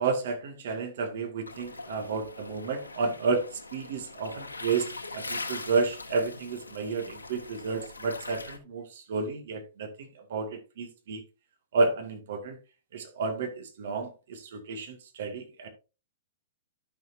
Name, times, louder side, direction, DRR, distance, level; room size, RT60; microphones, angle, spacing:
voice 1, 0.0-4.9 5.1-11.2 11.7-12.6 12.9-15.7, right 4 dB, 60° right, 2.1 m, -31 dB
sound 1, 1.5-8.6, left 3 dB, 90° left, 1.7 m, -42 dB
13.0 x 6.6 x 2.7 m
figure-of-eight pair, 110°, 0 cm